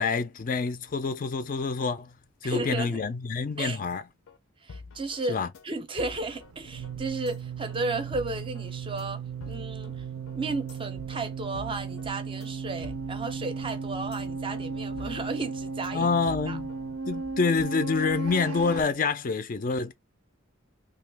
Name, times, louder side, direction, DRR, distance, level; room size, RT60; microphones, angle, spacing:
voice 1, 0.0-2.1 2.4-4.0 5.3-5.5 15.9-16.7 17.1-19.9, left 4 dB, 40° left, 0.4 m, -27 dB
voice 2, 2.4-3.0 3.6-3.8 4.6-10.0 10.3-16.1 16.5-16.6, right 2 dB, 25° right, 0.5 m, -34 dB
sound 1, 3.9-4.0 4.3-4.4 4.7-5.2 5.5-5.7 6.0-6.5 6.8-6.9 7.3-7.4 7.7-7.8 8.1-8.7 9.0-9.1 9.4-9.9 10.3-10.4 10.7-10.8 11.1-11.2 11.5-12.1 12.4-12.5 12.8-13.4 13.7-13.8 14.1-14.2 14.5-14.6 15.0-15.5 15.8-15.9 16.3-16.8 17.1-17.2 17.5-17.7, left 4 dB, 85° left, 0.6 m, -46 dB
sound 2, 6.0-18.8, right 4 dB, 90° right, 0.6 m, -35 dB
2.9 x 2.3 x 3.3 m
head